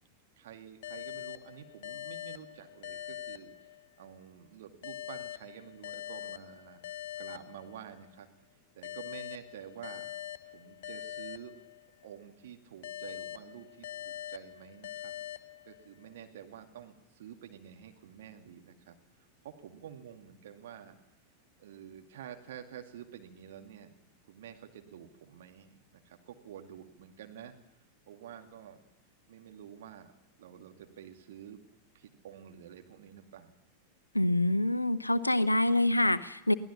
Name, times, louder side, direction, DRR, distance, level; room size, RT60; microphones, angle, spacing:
voice 1, 0.4-8.3 8.8-10.1 10.5-11.6 12.0-15.1 15.7-21.0 21.6-23.9 24.3-27.5 28.1-28.8 29.3-30.1 30.4-31.6 31.9-33.5, right 9 dB, 55° right, 4 dB, 2.3 m, -49 dB
sound 1, 0.8-4.2 4.8-8.1 8.8-12.2 12.8-16.1, left 12 dB, 55° left, 0.7 m, -43 dB
voice 2, 34.1-36.5, left 1 dB, 85° left, 14 dB, 0.8 m, -26 dB
23.0 x 16.5 x 7.2 m, 0.87 s
figure-of-eight pair, 90°, 0 cm